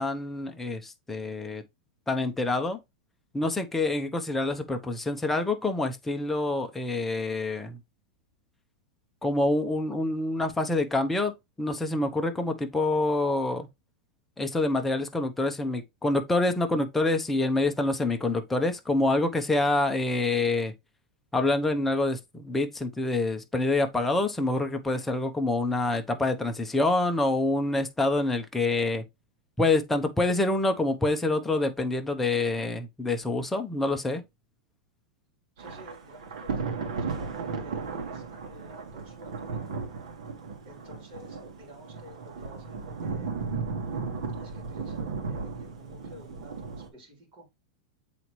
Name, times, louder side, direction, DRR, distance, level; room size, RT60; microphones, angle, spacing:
voice 1, 0.0-1.6 2.1-2.8 3.3-7.8 9.2-11.3 11.6-13.7 14.4-20.7 21.3-29.0 29.6-34.2, left 2 dB, 5° left, 0.8 m, -26 dB
voice 2, 35.6-39.8 40.7-43.4 44.4-47.5, left 1 dB, 35° right, 3.5 m, -52 dB
Thunder / Rain, 35.6-46.9, right 4 dB, 80° right, 1.7 m, -35 dB
7.7 x 4.1 x 3.1 m
supercardioid pair, 150°, 3 cm